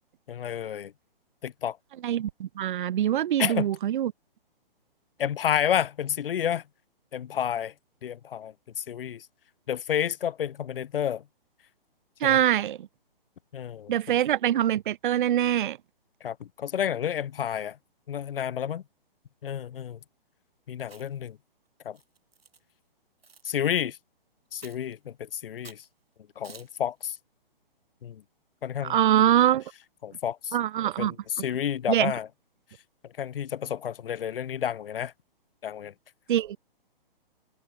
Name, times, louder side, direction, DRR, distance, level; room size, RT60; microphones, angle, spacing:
voice 1, 0.3-0.9 1.4-1.8 3.4-3.7 5.2-6.6 7.1-7.7 8.0-8.5 8.9-9.2 9.7-11.2 12.2-12.4 13.5-13.9 16.2-17.8 18.1-18.8 19.4-20.0 20.7-21.4 21.8-22.0 23.4-24.0 24.5-25.8 26.4-27.2 28.0-28.2 28.6-29.0 30.0-30.6 31.0-32.3 33.2-35.1 35.6-35.9, left 9 dB, 70° left, 0.7 m, -30 dB
voice 2, 2.0-4.1 12.2-12.9 13.9-15.8 28.8-29.6 30.5-31.1 31.9-32.1 36.3-36.6, right 11 dB, 55° right, 0.5 m, -24 dB
Chewing mastication, 20.8-21.3 21.9-22.6 23.2-23.5 24.6-24.9 25.6-25.9 26.4-26.8, right 5 dB, 85° right, 3.2 m, -50 dB
hypercardioid pair, 140°, 29 cm